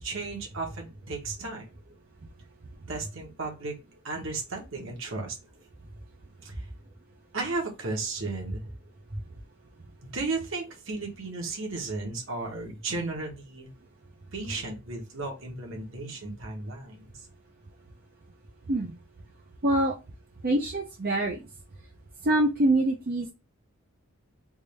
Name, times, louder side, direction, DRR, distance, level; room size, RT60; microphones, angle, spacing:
voice 1, 0.0-1.6 2.9-3.7 4.0-5.4 6.4-6.6 7.3-8.7 9.1-9.2 10.0-13.7 14.3-17.1, right 3 dB, 60° right, 1 dB, 1.2 m, -34 dB
voice 2, 19.6-20.0 20.4-21.5 22.2-23.3, right 1 dB, 45° right, -2 dB, 0.6 m, -25 dB
3.6 x 2.6 x 3.2 m, 0.26 s
head